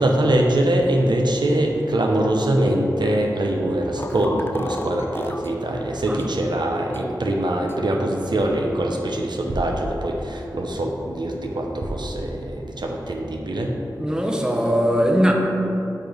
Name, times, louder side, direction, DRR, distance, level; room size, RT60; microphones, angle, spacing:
voice 1, 0.0-13.7, right 1 dB, 75° right, 0 dB, 0.6 m, -23 dB
sound 1, 4.0-5.5 6.2-6.3 6.9-7.0 7.7-7.8, left 2 dB, 30° left, 0.3 m, -33 dB
voice 2, 14.0-15.3, equal, 10° right, 0 dB, 0.7 m, -20 dB
6.7 x 3.1 x 5.2 m, 2.9 s
wide cardioid pair, 45°, 8 cm